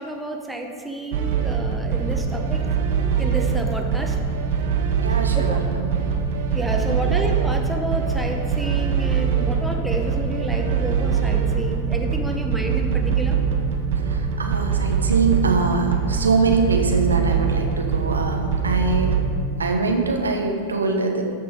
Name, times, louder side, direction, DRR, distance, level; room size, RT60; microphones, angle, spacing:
voice 1, 0.0-2.6 3.2-4.2 5.3-5.6 6.5-13.4, right 1 dB, 5° right, 3 dB, 1.0 m, -30 dB
sound 1, 1.1-19.2, right 6 dB, 50° right, 1.3 m, -23 dB
voice 2, 5.0-6.1 14.1-19.2 19.6-21.2, right 4 dB, 75° right, 3 dB, 1.1 m, -23 dB
14.0 x 6.0 x 5.0 m, 2.4 s
figure-of-eight pair, 90°, 0 cm